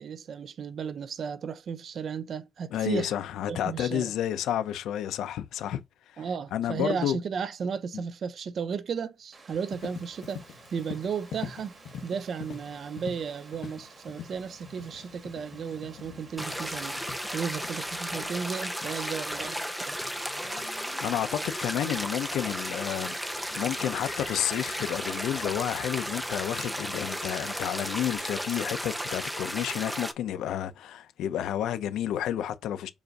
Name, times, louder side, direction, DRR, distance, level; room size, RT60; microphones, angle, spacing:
voice 1, 0.0-3.1 3.5-4.1 6.2-10.4 10.7-11.7 12.0-20.0, right 6 dB, 50° right, 0.6 m, -34 dB
voice 2, 2.7-5.8 6.1-6.2 6.5-7.2 7.9-8.0 21.0-23.1 23.6-32.9, left 11 dB, 90° left, 0.6 m, -30 dB
Water, 9.3-29.2, right 3 dB, 35° right, 1.5 m, -53 dB
Livestock farm animals working animals, 9.7-28.2, left 7 dB, 70° left, 1.0 m, -47 dB
sound 1, 16.4-30.1, equal, 5° right, 0.6 m, -34 dB
7.0 x 2.6 x 5.1 m
cardioid pair, 135°, 0 cm